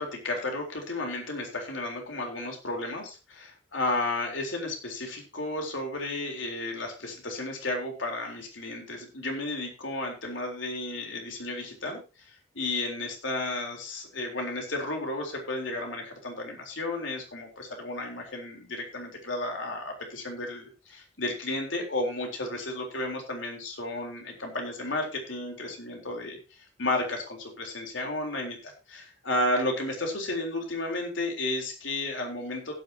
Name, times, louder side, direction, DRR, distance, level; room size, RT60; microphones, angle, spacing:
voice 1, 0.0-32.7, left 2 dB, 75° left, 1 dB, 4.0 m, -33 dB
16.0 x 9.0 x 2.9 m, 0.30 s
head